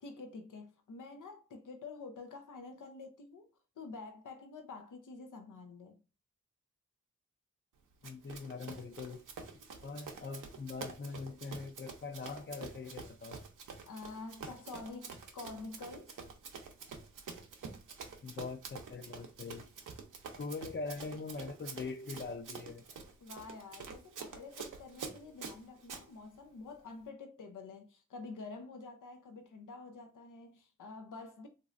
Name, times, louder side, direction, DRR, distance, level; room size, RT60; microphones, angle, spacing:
voice 1, 0.0-3.5 3.8-6.0 13.9-16.1 23.2-31.5, left 3 dB, 80° left, 0.7 m, -48 dB
voice 2, 8.0-9.2 9.8-13.4 18.2-19.7 20.4-22.8, left 4 dB, 40° left, 0.6 m, -42 dB
Run, 8.0-26.0, right 5 dB, 90° right, 0.6 m, -47 dB
3.1 x 2.7 x 2.4 m
cardioid pair, 50°, 31 cm